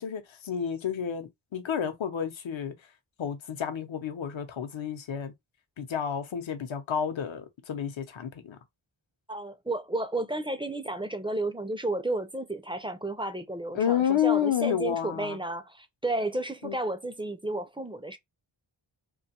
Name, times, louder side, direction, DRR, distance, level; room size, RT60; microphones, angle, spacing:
voice 1, 0.0-2.7 3.2-5.3 5.8-8.6 13.7-15.4 16.6-16.8, left 9 dB, 70° left, 0.7 m, -30 dB
voice 2, 9.3-18.2, right 2 dB, 10° right, 0.4 m, -32 dB
2.5 x 2.3 x 2.8 m
wide cardioid pair, 50°, 48 cm